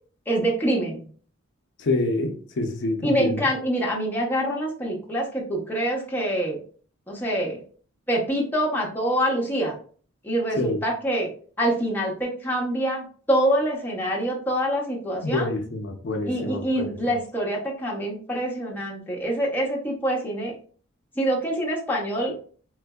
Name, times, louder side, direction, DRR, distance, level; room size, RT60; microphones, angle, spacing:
voice 1, 0.3-1.0 3.0-6.6 7.1-7.6 8.1-9.8 10.2-11.3 11.6-15.5 16.3-20.5 21.2-22.3, right 1 dB, 10° left, 0.7 m, -25 dB
voice 2, 1.8-3.5 10.6-10.8 15.2-16.8, left 2 dB, 50° left, 0.5 m, -27 dB
3.8 x 2.5 x 2.3 m
head